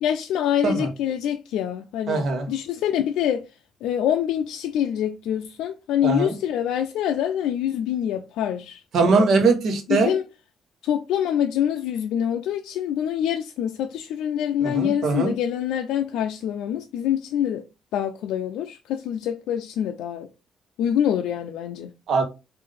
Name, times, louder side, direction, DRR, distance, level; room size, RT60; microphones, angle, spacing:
voice 1, 0.0-3.4 3.8-9.3 9.9-10.2 10.8-17.6 17.9-20.3 20.8-21.9, left 10 dB, 90° left, 0.3 m, -25 dB
voice 2, 2.1-2.5 6.0-6.3 8.9-10.1 14.6-15.3 22.1-22.2, right 4 dB, 60° right, 0.9 m, -21 dB
3.7 x 2.6 x 3.3 m
cardioid pair, 125°, 0 cm